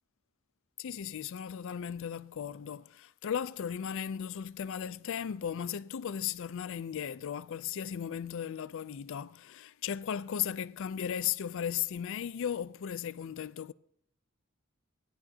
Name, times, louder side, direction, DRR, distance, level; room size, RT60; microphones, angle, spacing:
voice 1, 0.8-13.7, left 8 dB, 65° left, 0.4 m, -36 dB
17.0 x 11.0 x 2.8 m
head